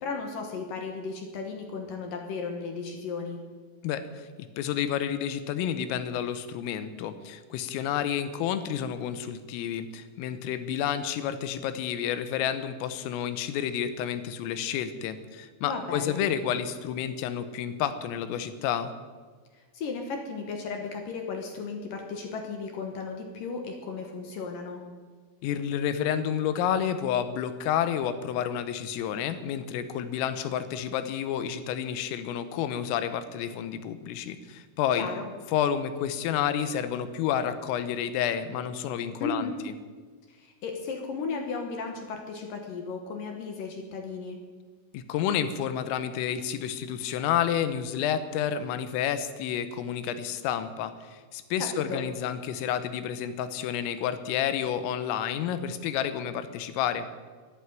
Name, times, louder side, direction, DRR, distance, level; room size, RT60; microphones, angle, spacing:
voice 1, 0.0-3.4 15.6-16.2 19.5-24.8 35.0-35.3 39.2-39.6 40.3-44.4 51.6-52.0, left 4 dB, 70° left, 3 dB, 2.1 m, -35 dB
voice 2, 3.8-18.9 25.4-35.1 35.5-39.5 44.9-57.1, left 9 dB, 90° left, 11 dB, 3.5 m, -30 dB
12.5 x 12.0 x 9.0 m, 1.5 s
omnidirectional pair, 5.9 m